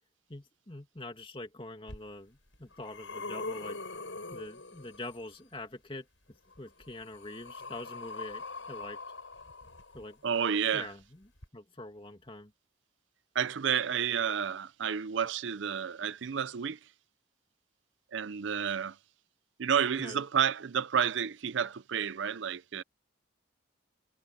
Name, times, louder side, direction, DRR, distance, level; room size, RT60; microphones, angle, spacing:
voice 1, 0.3-3.8 4.3-9.0 9.9-10.2 10.7-11.0 11.5-12.5 20.0-20.2, left 2 dB, 25° left, 2.3 m, -44 dB
sound 1, 1.9-2.0 2.5-5.3 6.5-10.4 11.4-11.5, left 3 dB, 70° left, 6.9 m, -43 dB
voice 2, 10.2-10.9 13.3-16.8 18.1-19.0 19.6-22.8, right 7 dB, 65° right, 0.5 m, -30 dB
head